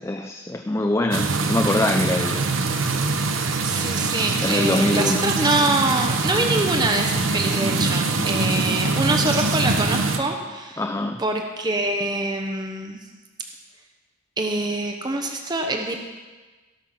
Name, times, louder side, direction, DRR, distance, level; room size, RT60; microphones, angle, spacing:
voice 1, 0.0-2.4 4.4-5.2 10.8-11.2, left 1 dB, 15° left, 5 dB, 0.4 m, -23 dB
sound 1, 1.1-10.2, right 3 dB, 90° right, 1.0 m, -23 dB
voice 2, 3.6-10.8 11.2-13.0 14.4-16.0, right 2 dB, 20° right, 3 dB, 0.9 m, -24 dB
17.0 x 5.9 x 5.9 m, 1.3 s
head